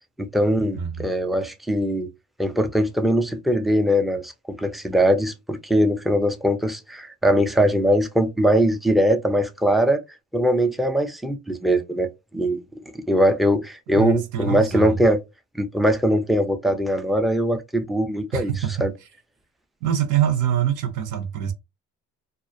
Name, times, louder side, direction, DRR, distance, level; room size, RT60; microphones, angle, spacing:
voice 1, 0.2-2.1 2.4-10.0 10.3-12.6 12.9-15.2 15.5-18.5 18.8-18.9, equal, ahead, 0.4 m, -21 dB
voice 2, 0.8-1.1 14.0-15.0 18.3-18.9 19.8-21.5, right 10 dB, 85° right, 0.7 m, -24 dB
2.3 x 2.1 x 2.5 m
cardioid pair, 90°, 30 cm